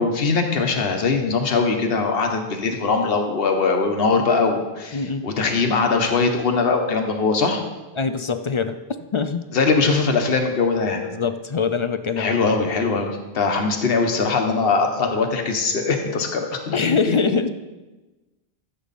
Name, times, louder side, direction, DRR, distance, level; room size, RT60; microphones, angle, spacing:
voice 1, 0.0-7.6 9.5-11.0 12.2-17.2, left 4 dB, 70° left, 4 dB, 1.3 m, -21 dB
voice 2, 4.9-5.2 8.0-8.8 9.1-9.5 11.0-12.4 13.5-13.6 16.7-17.5, left 5 dB, 45° left, 10 dB, 0.4 m, -23 dB
13.5 x 7.6 x 4.1 m, 1.2 s
omnidirectional pair, 1.0 m